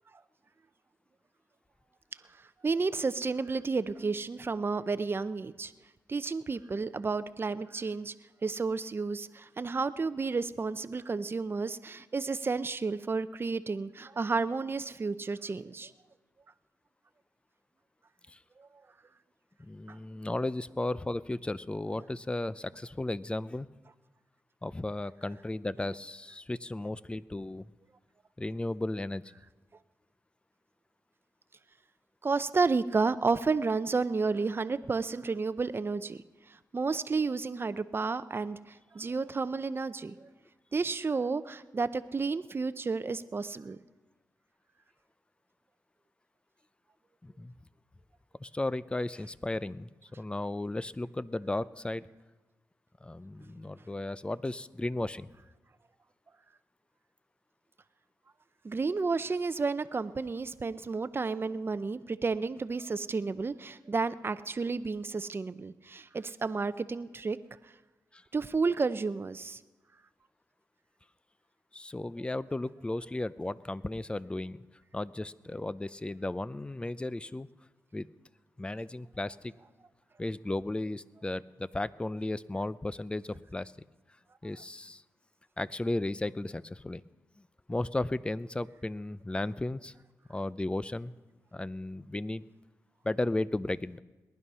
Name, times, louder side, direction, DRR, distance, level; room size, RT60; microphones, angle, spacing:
voice 1, 2.6-5.7 6.1-8.1 8.4-15.9 18.6-18.7 32.2-36.2 36.7-40.3 40.7-43.8 58.6-67.4 68.3-69.6, right 4 dB, 35° right, 13 dB, 0.7 m, -31 dB
voice 2, 19.6-23.7 24.6-27.7 28.4-29.2 47.2-47.5 48.4-52.1 53.0-55.3 68.1-68.2 71.7-74.6 74.9-77.5 77.9-78.1 78.6-79.5 80.2-83.7 84.4-85.0 85.6-87.0 87.7-89.9 90.3-91.1 91.5-92.5 93.0-94.0, left 2 dB, 15° left, 18 dB, 0.5 m, -35 dB
19.0 x 11.0 x 5.6 m, 1.2 s
cardioid pair, 65°, 6 cm